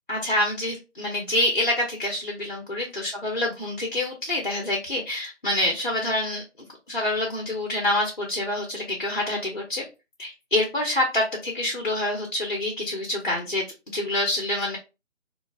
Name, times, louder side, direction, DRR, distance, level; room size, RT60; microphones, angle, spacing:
voice 1, 0.1-6.4 6.9-9.9 10.2-13.6 13.9-14.8, left 1 dB, 40° left, 0 dB, 0.6 m, -26 dB
3.0 x 2.2 x 2.2 m, 0.28 s
figure-of-eight pair, 165°, 38 cm